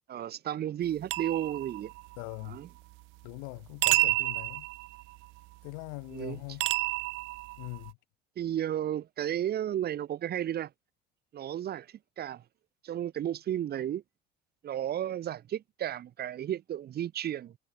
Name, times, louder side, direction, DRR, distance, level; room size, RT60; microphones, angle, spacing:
voice 1, 0.1-1.9 2.4-2.7 6.1-6.4 8.4-10.7 11.3-12.4 12.8-14.0 14.6-17.6, right 11 dB, 50° right, 4.0 m, -33 dB
sound 1, 1.1-2.3 3.8-5.3 6.6-7.9, right 25 dB, 70° right, 0.4 m, -30 dB
voice 2, 2.2-2.6 3.2-4.7 5.6-6.6 7.6-8.0, left 40 dB or more, 90° left, 7.5 m, -41 dB
supercardioid pair, 100°, 21 cm